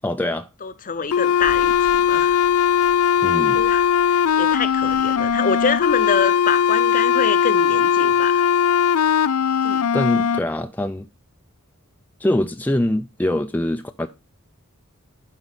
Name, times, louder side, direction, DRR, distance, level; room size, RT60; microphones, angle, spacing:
voice 1, 0.0-0.5 3.2-3.6 9.9-11.1 12.2-14.1, left 1 dB, 10° left, 0.4 m, -23 dB
voice 2, 0.6-2.4 3.5-8.4 9.6-9.8, left 5 dB, 40° left, 0.7 m, -26 dB
sound 1, 1.1-10.4, left 8 dB, 90° left, 0.5 m, -19 dB
sound 2, 1.4-6.2, right 1 dB, 85° right, 1.2 m, -47 dB
11.5 x 5.4 x 4.0 m
head